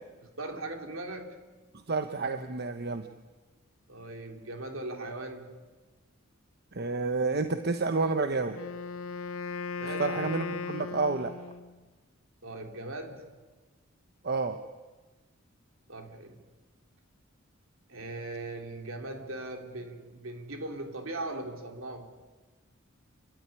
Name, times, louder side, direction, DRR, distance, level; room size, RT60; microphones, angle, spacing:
voice 1, 0.2-1.4 3.9-5.6 9.8-10.3 12.4-13.4 15.9-16.4 17.9-22.1, right 2 dB, 70° right, 4 dB, 3.1 m, -39 dB
voice 2, 1.9-3.1 6.7-8.6 10.0-11.3 14.2-14.6, right 3 dB, 50° right, 8 dB, 0.9 m, -29 dB
Wind instrument woodwind instrument, 8.5-11.8, left 5 dB, 80° left, 0.6 m, -37 dB
29.0 x 12.5 x 9.9 m, 1.3 s
head